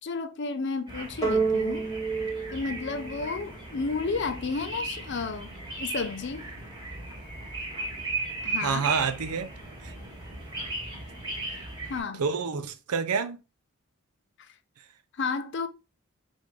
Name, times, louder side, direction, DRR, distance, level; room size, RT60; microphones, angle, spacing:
voice 1, 0.0-1.9 2.5-5.5 5.8-6.5 8.4-8.9 11.8-12.2 14.4-14.6 15.1-15.7, left 4 dB, 50° left, 0.5 m, -32 dB
sound 1, 0.9-12.0, right 2 dB, 20° right, 1.5 m, -37 dB
sound 2, 1.2-3.8, right 4 dB, 15° left, 1.2 m, -29 dB
voice 2, 8.6-9.5 9.8-9.9 12.2-13.4, right 5 dB, 85° right, 0.6 m, -28 dB
4.9 x 2.6 x 3.4 m
head